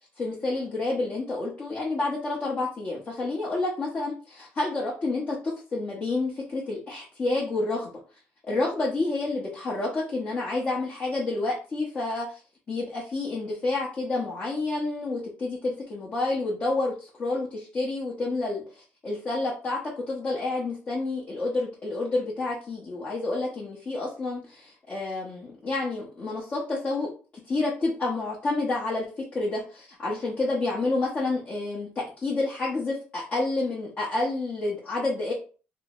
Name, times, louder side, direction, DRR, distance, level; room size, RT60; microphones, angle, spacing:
voice 1, 0.2-7.9 8.4-12.3 12.7-19.8 20.1-27.1 27.5-35.3, left 2 dB, 30° left, -5 dB, 0.9 m, -29 dB
3.0 x 2.1 x 3.7 m, 0.37 s
cardioid pair, 130°, 4 cm